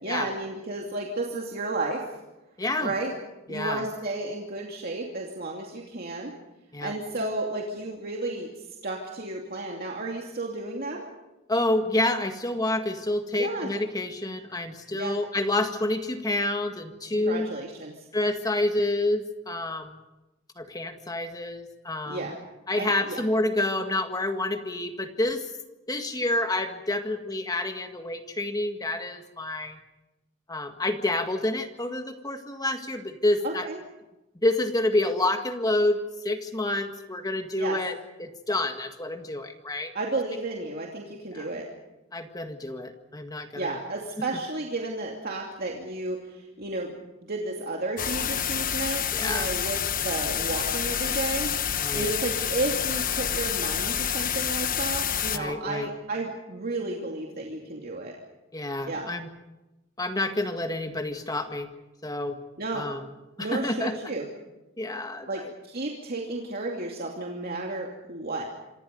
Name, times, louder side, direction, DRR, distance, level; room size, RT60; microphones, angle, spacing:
voice 1, 0.0-2.1 2.8-3.1 3.5-6.3 6.8-8.5 8.8-11.0 13.3-13.7 14.9-15.2 17.1-17.9 22.1-22.4 22.8-23.2 33.4-33.8 37.6-37.8 39.9-41.7 43.6-46.9 47.2-51.5 51.9-58.2 58.9-59.1 62.6-62.9 63.4-64.3 65.3-68.4, right 2 dB, 50° right, 0 dB, 2.6 m, -32 dB
voice 2, 2.6-2.9 3.5-3.8 6.7-6.9 11.5-17.5 18.1-20.0 20.6-22.3 22.7-25.5 25.9-29.8 30.5-33.7 34.4-36.0 36.2-37.9 38.2-39.9 41.3-41.5 42.1-43.8 44.2-44.3 49.1-49.5 51.8-52.1 55.3-55.9 58.5-59.3 60.0-61.7 62.0-62.4 62.7-63.0 63.4-64.0 64.8-65.5, left 2 dB, 20° left, 6 dB, 1.8 m, -28 dB
sound 1, 48.0-55.4, left 9 dB, 45° left, 1.1 m, -28 dB
27.0 x 25.5 x 5.3 m, 1.0 s
head